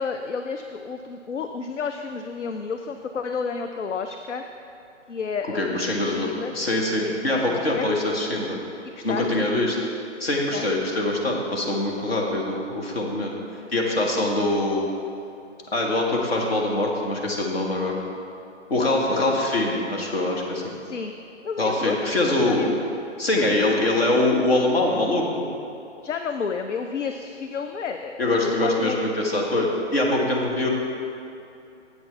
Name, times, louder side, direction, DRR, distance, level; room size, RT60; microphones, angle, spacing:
voice 1, 0.0-4.4 5.1-6.5 7.0-7.9 8.8-9.4 10.5-10.8 19.1-19.3 20.9-21.1 21.4-22.8 26.0-28.2 28.6-29.0, left 5 dB, 70° left, 6 dB, 0.5 m, -31 dB
voice 2, 5.5-8.6 9.0-9.8 10.2-13.3 13.7-14.9 15.7-18.0 18.7-20.7 21.6-22.6 23.2-25.5 28.2-30.7, left 2 dB, 55° left, -1 dB, 1.4 m, -23 dB
7.8 x 6.1 x 4.5 m, 2.7 s
figure-of-eight pair, 140°, 37 cm